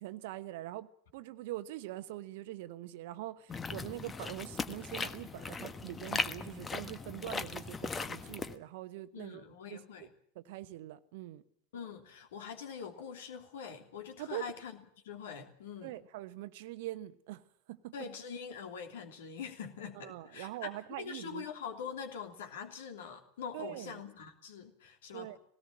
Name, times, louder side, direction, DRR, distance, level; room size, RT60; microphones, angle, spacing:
voice 1, 0.0-9.4 9.7-10.1 10.3-11.4 14.2-14.4 15.8-17.4 17.7-17.9 19.9-21.5 23.5-24.0 25.1-25.4, right 15 dB, 50° right, 1.0 m, -43 dB
sound 1, 3.5-8.6, left 4 dB, 15° left, 1.2 m, -38 dB
voice 2, 9.1-10.1 11.7-14.8 15.0-16.0 17.9-20.7 21.0-25.4, left 7 dB, 60° left, 3.0 m, -44 dB
19.0 x 18.0 x 8.9 m
figure-of-eight pair, 90°, 0 cm